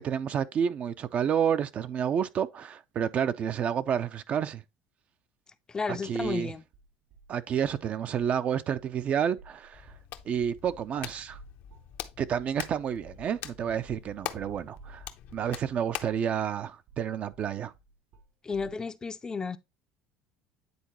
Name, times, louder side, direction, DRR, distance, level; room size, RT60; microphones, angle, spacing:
voice 1, 0.0-4.6 6.0-6.5 7.3-9.8 10.3-11.4 12.2-15.0 15.3-17.7, right 8 dB, 45° right, 0.5 m, -30 dB
voice 2, 5.7-6.6 18.4-19.6, left 5 dB, 20° left, 0.5 m, -33 dB
sound 1, 6.7-7.8 8.1-8.4 8.7-15.5 15.8-16.0 16.4-18.7, right 3 dB, 70° right, 2.2 m, -55 dB
Hands, 9.7-16.2, left 11 dB, 65° left, 0.7 m, -43 dB
9.5 x 3.8 x 2.9 m
supercardioid pair, 95°, 3 cm